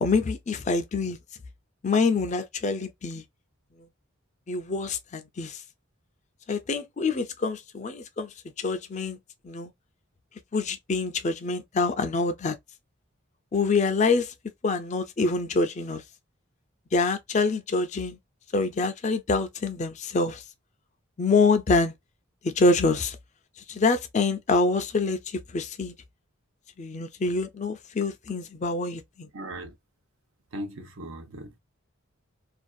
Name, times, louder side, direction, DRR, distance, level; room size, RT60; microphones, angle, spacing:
voice 1, 0.0-1.2 1.8-3.2 4.5-5.6 6.5-8.3 8.6-9.2 9.4-9.7 10.5-12.6 13.5-14.3 14.6-16.0 16.9-18.2 18.5-20.4 21.2-21.9 22.4-23.2 23.7-25.9 26.8-29.3, left 3 dB, 35° left, 0.4 m, -26 dB
voice 2, 29.3-29.7 30.5-31.6, right 1 dB, 80° right, 0.8 m, -38 dB
2.6 x 2.4 x 2.2 m
head